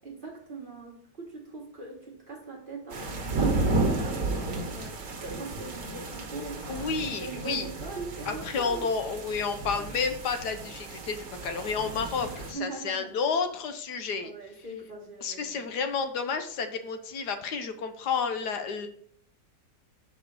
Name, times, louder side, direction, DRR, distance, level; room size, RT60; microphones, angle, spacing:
voice 1, 0.0-5.0 5.2-8.9 10.0-10.1 12.2-13.1 14.2-15.7, right 3 dB, 35° right, 0 dB, 1.2 m, -41 dB
sound 1, 2.9-12.5, right 2 dB, 60° right, 1.5 m, -33 dB
voice 2, 6.7-7.7 8.3-14.3 15.2-18.9, left 5 dB, 75° left, 7 dB, 1.3 m, -31 dB
6.2 x 4.8 x 5.1 m, 0.63 s
omnidirectional pair, 1.8 m